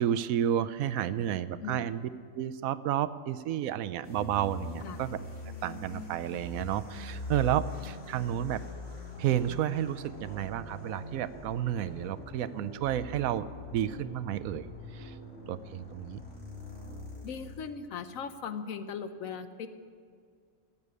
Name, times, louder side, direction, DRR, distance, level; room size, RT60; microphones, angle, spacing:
voice 1, 0.0-2.1 2.3-5.1 5.6-8.6 9.2-13.4 13.7-14.7 14.9-15.1 15.5-16.2, right 11 dB, 85° right, 14 dB, 1.0 m, -31 dB
sound 1, 4.0-17.7, left 2 dB, 50° left, 2.8 m, -43 dB
voice 2, 17.2-19.7, left 6 dB, 75° left, 10 dB, 1.2 m, -38 dB
13.0 x 8.3 x 9.6 m, 2.1 s
omnidirectional pair, 1.4 m